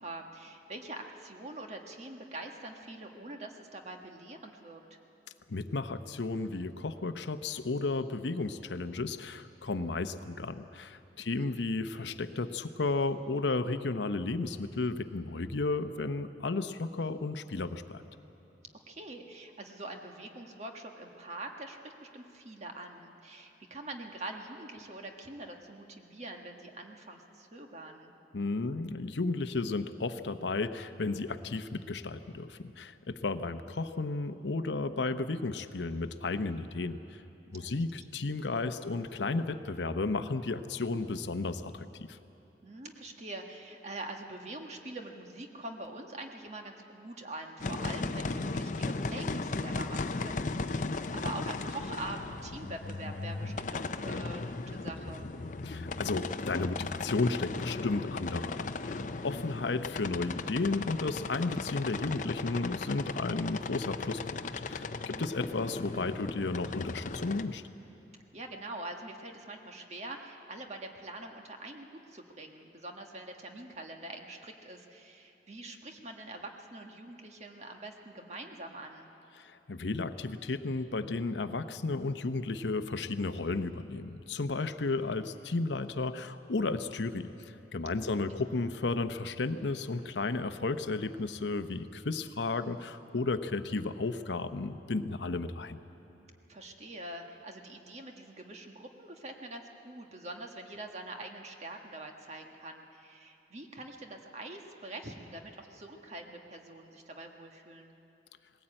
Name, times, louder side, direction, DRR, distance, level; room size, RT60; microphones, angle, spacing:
voice 1, 0.0-5.0 11.2-11.5 18.9-28.1 37.5-38.1 42.6-55.3 65.0-65.3 68.3-79.1 87.8-88.1 96.5-107.9, right 2 dB, 40° right, 3 dB, 1.5 m, -44 dB
voice 2, 5.5-18.0 28.3-37.0 37.5-42.2 55.6-64.4 64.7-67.6 79.4-95.8, left 3 dB, 85° left, 10 dB, 0.8 m, -33 dB
sound 1, 47.6-67.4, left 3 dB, 45° left, 0.6 m, -36 dB
20.0 x 17.0 x 8.8 m, 3.0 s
head